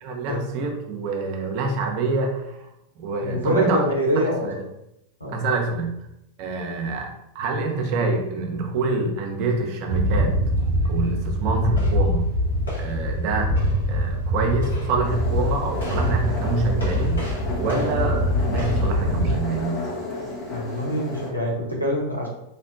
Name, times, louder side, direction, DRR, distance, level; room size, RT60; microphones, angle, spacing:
voice 1, 0.0-2.7 3.0-3.9 4.1-4.6 5.3-6.0 6.4-10.3 10.9-12.3 12.7-13.5 13.9-17.2 17.6-19.8, right 3 dB, 45° right, 2 dB, 0.5 m, -26 dB
voice 2, 3.2-4.5 5.2-5.4 20.5-22.3, equal, 90° left, -2 dB, 0.6 m, -25 dB
sound 1, 9.9-19.3, equal, 70° left, 1.4 m, -23 dB
sound 2, 15.0-21.3, left 2 dB, 30° left, 0.7 m, -32 dB
2.8 x 2.1 x 2.5 m, 0.82 s
figure-of-eight pair, 90°, 0 cm